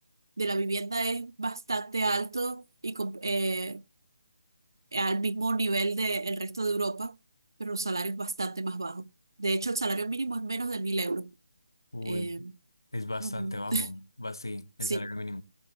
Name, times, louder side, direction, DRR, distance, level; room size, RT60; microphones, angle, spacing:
voice 1, 0.4-3.8 4.9-7.1 7.6-9.1 9.4-11.3 12.0-12.5 13.2-13.9 14.8-15.1, right 3 dB, 70° right, 0.9 m, -30 dB
voice 2, 11.9-12.3 12.9-15.4, left 2 dB, 85° left, 1.0 m, -36 dB
19.0 x 7.3 x 3.3 m
figure-of-eight pair, 150°, 2 cm